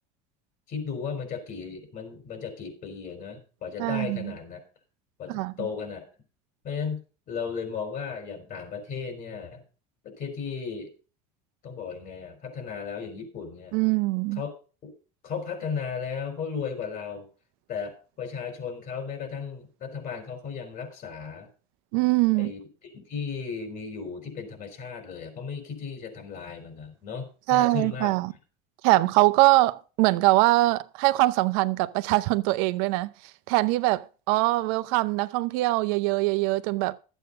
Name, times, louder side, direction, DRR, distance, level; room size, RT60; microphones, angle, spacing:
voice 1, 0.7-4.6 5.2-6.0 6.6-7.0 7.3-9.6 10.0-10.9 11.6-13.8 14.3-14.5 14.8-14.9 15.2-17.3 17.7-21.5 22.3-28.1, left 6 dB, 50° left, 4.5 m, -35 dB
voice 2, 3.8-4.3 5.3-5.5 13.7-14.4 21.9-22.5 27.5-28.3 28.8-33.1 33.5-37.0, right 20 dB, 70° right, 0.7 m, -23 dB
12.0 x 8.2 x 5.3 m
supercardioid pair, 105°, 19 cm